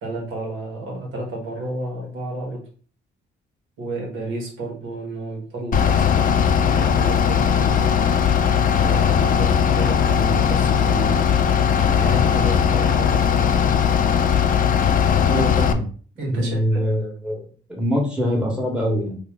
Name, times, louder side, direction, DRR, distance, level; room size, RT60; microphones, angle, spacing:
voice 1, 0.0-2.6 3.8-7.9 8.8-11.5 11.8-13.4 16.2-16.8, right 2 dB, 90° right, -2 dB, 1.4 m, -31 dB
Bus / Idling, 5.7-15.7, left 8 dB, 45° left, 0.4 m, -18 dB
voice 2, 15.2-15.8 16.3-17.4 17.7-19.2, equal, 5° right, -2 dB, 1.2 m, -23 dB
2.8 x 2.7 x 3.6 m, 0.42 s
cardioid pair, 90°, 20 cm